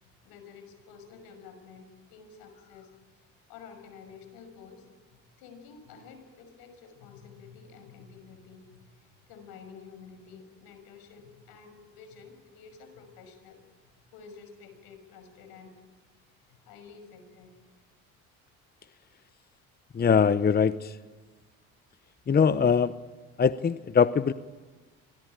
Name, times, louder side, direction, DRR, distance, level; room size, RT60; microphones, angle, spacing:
voice 1, 0.0-15.7 16.5-17.7, left 5 dB, 75° left, 8 dB, 6.2 m, -50 dB
voice 2, 19.9-21.0 22.3-22.9 23.4-24.3, left 6 dB, 25° left, 14 dB, 0.8 m, -22 dB
27.0 x 22.0 x 9.0 m, 1.3 s
supercardioid pair, 75°, 37 cm